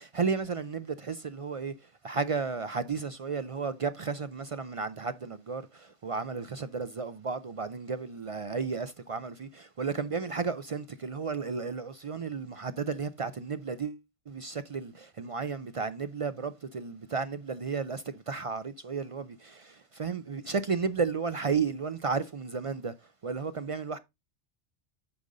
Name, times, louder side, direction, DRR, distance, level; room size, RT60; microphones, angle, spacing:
voice 1, 0.0-1.7 2.0-22.9 23.2-24.0, right 5 dB, 60° right, 0.3 m, -33 dB
8.6 x 5.3 x 3.7 m
omnidirectional pair, 1.2 m